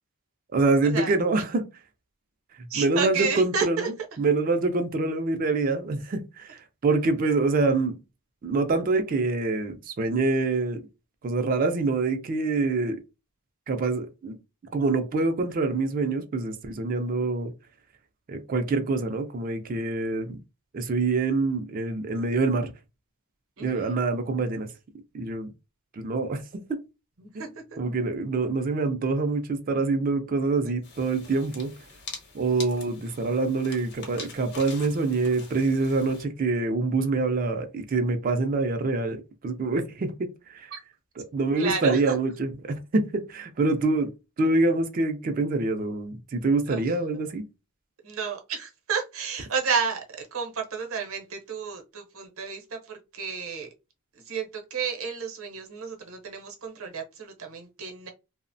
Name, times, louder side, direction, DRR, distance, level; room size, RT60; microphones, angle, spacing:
voice 1, 0.5-1.6 2.7-8.0 8.4-10.8 11.2-13.0 13.7-14.4 14.7-17.5 18.3-20.4 20.7-22.7 23.6-24.7 25.1-25.5 25.9-26.4 26.7-26.8 27.3-27.5 27.8-31.7 32.3-39.2 39.4-40.7 41.2-44.1 44.4-47.4, right 3 dB, 40° right, 0.3 m, -25 dB
voice 2, 2.7-3.9 23.6-24.0 27.2-27.5 40.7-40.8 41.6-42.1 46.7-46.8 48.0-53.7 54.3-58.1, right 5 dB, 65° right, 0.7 m, -31 dB
sound 1, 30.8-36.2, left 4 dB, 50° left, 0.8 m, -44 dB
2.8 x 2.0 x 2.6 m
head